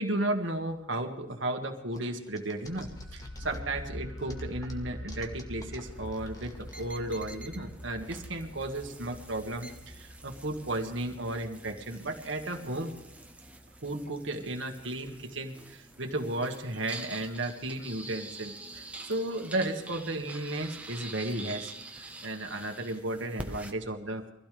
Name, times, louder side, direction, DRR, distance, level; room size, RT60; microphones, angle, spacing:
voice 1, 0.0-13.0 13.8-24.2, right 1 dB, 70° right, 4 dB, 1.9 m, -34 dB
sound 1, 1.9-3.8 4.2-7.3, left 2 dB, 20° left, 1.8 m, -52 dB
sound 2, 2.7-14.5, left 1 dB, 90° left, 2.8 m, -45 dB
sound 3, 5.8-23.7, right 2 dB, 5° right, 1.2 m, -47 dB
23.5 x 16.0 x 3.5 m, 0.89 s
head